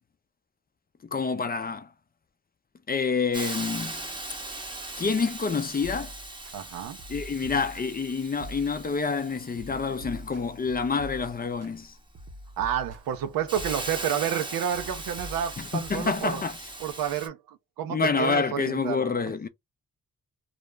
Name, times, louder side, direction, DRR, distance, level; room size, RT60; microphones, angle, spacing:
voice 1, 1.1-1.9 2.9-4.0 5.0-6.1 7.1-11.9 15.7-16.6 17.9-19.5, left 5 dB, 30° left, 0.5 m, -27 dB
Hiss, 3.3-17.3, right 2 dB, 15° right, 0.8 m, -40 dB
sound 1, 5.8-6.5 7.0-8.1 8.4-9.1 9.6-11.7 12.1-13.2 13.6-14.3 14.7-16.1, equal, 50° right, 0.8 m, -44 dB
voice 2, 6.5-7.0 12.6-16.4 16.8-19.2, right 9 dB, 80° right, 0.6 m, -30 dB
2.4 x 2.0 x 3.2 m
cardioid pair, 55°, 33 cm